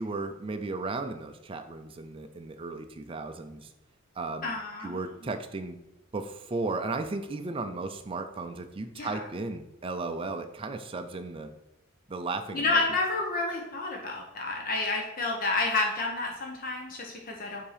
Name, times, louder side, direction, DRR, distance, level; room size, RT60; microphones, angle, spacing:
voice 1, 0.0-3.7 4.2-4.5 4.8-5.8 6.1-11.5 12.1-12.8, right 3 dB, 25° right, 6 dB, 0.4 m, -35 dB
voice 2, 4.4-5.0 8.9-9.2 12.5-17.6, left 3 dB, 45° left, 0 dB, 0.8 m, -30 dB
7.2 x 2.8 x 4.9 m, 0.89 s
head